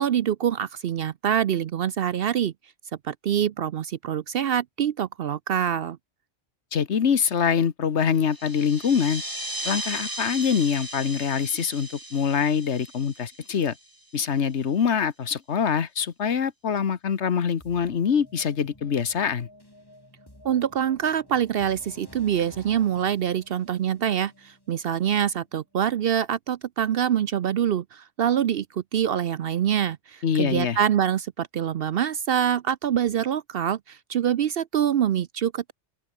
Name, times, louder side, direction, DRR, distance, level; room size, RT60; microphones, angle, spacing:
voice 1, 0.0-2.5 3.0-6.0 20.4-35.7, right 9 dB, 60° right, 0.8 m, -25 dB
voice 2, 6.7-9.2 9.6-13.7 14.1-19.5 30.2-30.8, left 7 dB, 75° left, 1.5 m, -24 dB
sound 1, 8.2-14.3, right 1 dB, 20° right, 3.3 m, -36 dB
sound 2, 17.6-25.5, left 1 dB, 20° left, 4.6 m, -51 dB
open air
omnidirectional pair, 1.2 m